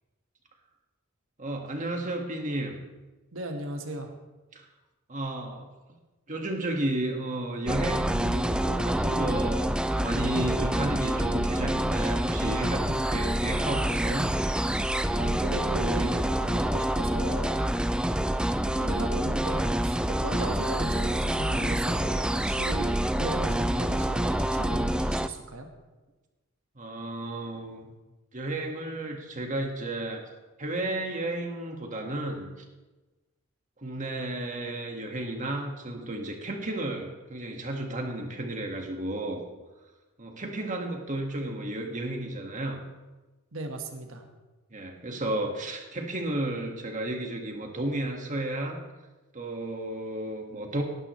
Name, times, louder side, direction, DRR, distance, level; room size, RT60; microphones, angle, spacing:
voice 1, 1.4-2.8 4.5-4.6 5.1-5.7 6.3-14.3 26.8-27.9 28.3-30.2 30.6-32.5 33.8-39.4 40.2-42.8 44.7-48.8 49.3-50.8, right 1 dB, 35° right, 2 dB, 1.7 m, -33 dB
voice 2, 3.3-4.1 15.1-17.6 18.6-25.7 43.5-44.2, right 2 dB, 70° right, 4 dB, 1.5 m, -36 dB
sound 1, 7.7-25.3, right 1 dB, 5° right, 0.4 m, -27 dB
18.5 x 11.0 x 3.2 m, 1.2 s
head